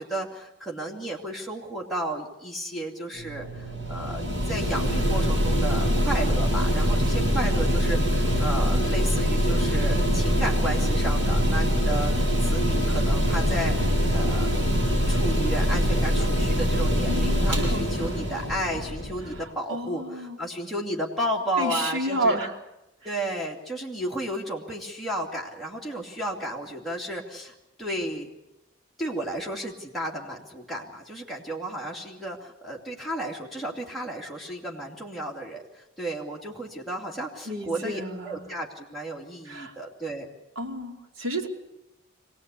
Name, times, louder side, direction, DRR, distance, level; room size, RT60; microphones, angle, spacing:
voice 1, 0.0-14.5 15.1-22.4 23.0-28.3 29.0-40.3, right 1 dB, ahead, -4 dB, 2.6 m, -33 dB
Mechanical fan, 3.1-19.4, equal, 60° right, 7.2 m, -24 dB
voice 2, 17.1-18.2 19.3-20.4 21.6-22.5 23.0-23.1 37.5-38.5 39.5-39.7 40.6-41.5, right 1 dB, 90° right, 0 dB, 2.7 m, -31 dB
24.0 x 18.0 x 8.4 m, 0.93 s
head